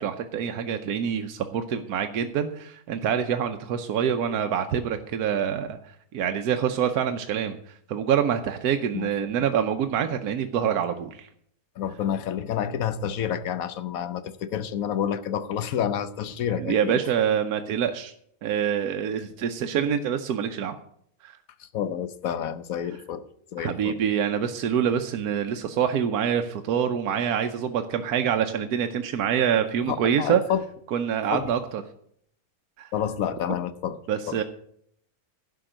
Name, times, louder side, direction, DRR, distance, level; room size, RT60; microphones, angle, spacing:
voice 1, 0.0-11.3 16.6-18.1 18.4-20.8 21.2-21.4 23.6-30.4 30.9-31.8 32.8-32.9 34.1-34.4, right 8 dB, 90° right, 7 dB, 1.3 m, -26 dB
voice 2, 8.9-9.5 11.8-17.0 21.6-23.2 23.5-24.0 29.9-30.6 31.3-31.5 32.9-34.0 34.3-34.4, left 9 dB, 70° left, 13 dB, 1.2 m, -29 dB
11.5 x 6.0 x 8.9 m, 0.69 s
omnidirectional pair, 1.6 m